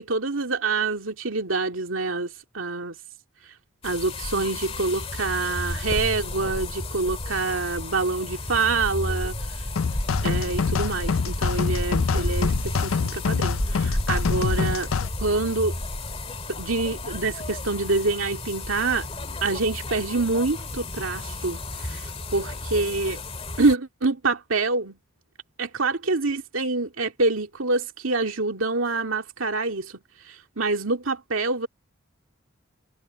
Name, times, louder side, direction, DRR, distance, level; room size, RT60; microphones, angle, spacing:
voice 1, 0.0-2.9 3.8-9.3 10.2-14.9 15.2-15.7 16.5-19.1 19.4-22.0 22.3-23.2 23.6-25.0 25.6-29.9 30.3-31.7, right 3 dB, 85° right, 2.2 m, -26 dB
sound 1, 3.8-23.8, left 2 dB, 30° left, 2.2 m, -32 dB
sound 2, 9.8-15.1, left 5 dB, 85° left, 0.5 m, -26 dB
head